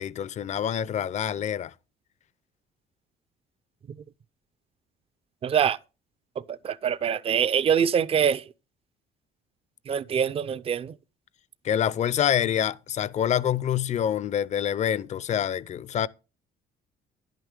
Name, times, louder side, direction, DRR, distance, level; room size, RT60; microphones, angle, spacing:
voice 1, 0.0-1.7 11.6-16.1, left 9 dB, 45° left, 0.5 m, -26 dB
voice 2, 5.4-5.8 6.4-8.4 9.9-11.0, right 8 dB, 35° right, 0.5 m, -24 dB
11.0 x 9.1 x 3.6 m
cardioid pair, 110°, 17 cm